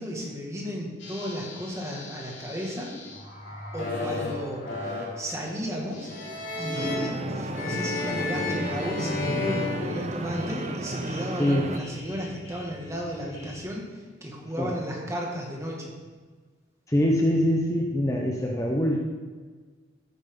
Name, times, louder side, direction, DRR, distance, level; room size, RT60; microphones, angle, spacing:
voice 1, 0.0-2.9 3.7-6.1 6.6-13.9 14.2-15.9, equal, 15° right, -1 dB, 2.2 m, -34 dB
sound 1, 1.0-13.6, left 2 dB, 75° left, 3.7 m, -38 dB
sound 2, 6.1-10.7, left 3 dB, 50° left, 2.1 m, -33 dB
sound 3, 6.7-11.8, right 1 dB, 35° right, 0.6 m, -33 dB
voice 2, 11.4-11.7 14.6-14.7 16.9-19.0, equal, 15° left, -1 dB, 1.0 m, -24 dB
13.5 x 9.5 x 4.0 m, 1.4 s
head